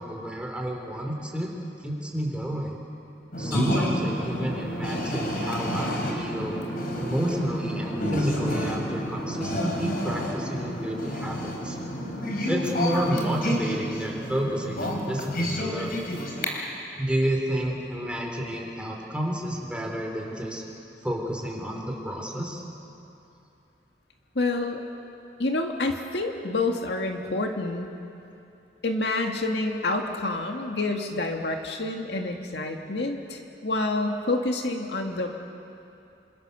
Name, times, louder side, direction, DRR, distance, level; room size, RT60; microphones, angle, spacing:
voice 1, 0.0-1.5 1.8-2.8 3.4-6.6 7.0-11.8 12.5-15.9 17.0-20.6 21.0-22.6, right 1 dB, 5° right, 0 dB, 4.0 m, -30 dB
sound 1, 3.3-16.4, equal, 55° left, 4.6 m, -29 dB
voice 2, 24.4-24.8 25.4-27.9 28.8-35.4, left 2 dB, 75° left, 3 dB, 2.0 m, -28 dB
28.5 x 26.5 x 7.0 m, 2.7 s
head